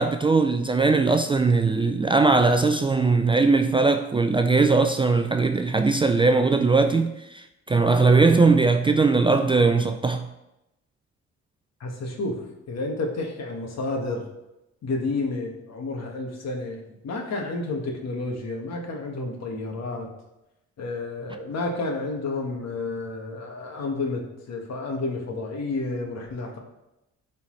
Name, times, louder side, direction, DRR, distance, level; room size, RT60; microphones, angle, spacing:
voice 1, 0.0-10.3, right 4 dB, 15° right, 0.3 m, -20 dB
voice 2, 11.8-14.2 14.8-20.1 20.8-26.6, left 3 dB, 60° left, 1.6 m, -30 dB
11.0 x 4.2 x 3.2 m
cardioid pair, 90°, 30 cm